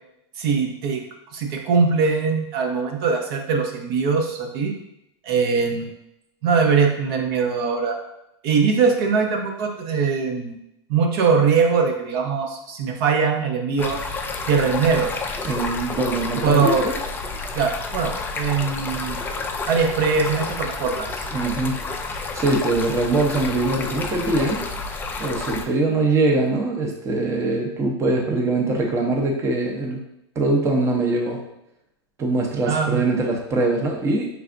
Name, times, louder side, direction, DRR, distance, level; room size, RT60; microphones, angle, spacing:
voice 1, 0.4-1.0 1.3-4.7 5.2-5.9 6.4-8.0 8.4-10.6 10.9-14.0 14.5-15.1 16.4-16.9 17.5-19.2 19.7-21.2 32.7-33.0, right 5 dB, 55° right, 2 dB, 0.7 m, -21 dB
Stream, 13.8-25.7, left 3 dB, 15° left, 0.3 m, -30 dB
voice 2, 15.4-16.9 21.3-21.8 22.3-24.6 25.2-30.0 30.4-31.4 32.2-34.3, right 2 dB, 20° right, 0 dB, 0.6 m, -22 dB
4.7 x 3.4 x 2.5 m, 0.82 s
supercardioid pair, 135°, 14 cm